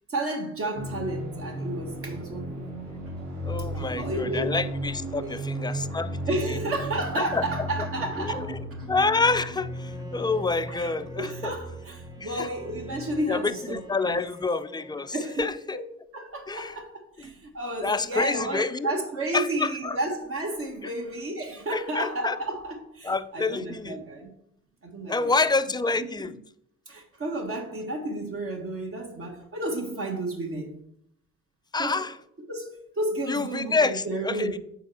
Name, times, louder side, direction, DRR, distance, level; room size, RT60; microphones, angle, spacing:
voice 1, 0.1-2.7 3.6-4.5 5.2-5.4 6.3-8.5 8.8-8.9 10.7-10.9 11.2-14.2 15.1-15.5 15.7-15.8 16.1-24.3 24.8-25.3 26.0-26.3 26.9-30.8 31.8-32.0 32.5-34.6, right 1 dB, 45° right, 1.5 m, -32 dB
sound 1, 0.7-13.2, right 1 dB, 65° right, 3.5 m, -35 dB
voice 2, 3.4-6.2 6.5-6.6 7.2-7.4 8.2-8.6 8.9-11.5 12.2-12.5 13.3-15.8 16.5-16.7 17.8-18.9 19.3-20.0 20.8-20.9 21.7-22.4 23.0-24.0 25.1-26.3 31.7-32.2 33.3-34.6, left 3 dB, 15° left, 0.4 m, -28 dB
Bowed string instrument, 9.5-15.8, right 1 dB, 10° right, 0.9 m, -47 dB
8.2 x 4.1 x 5.7 m
cardioid pair, 90°, 30 cm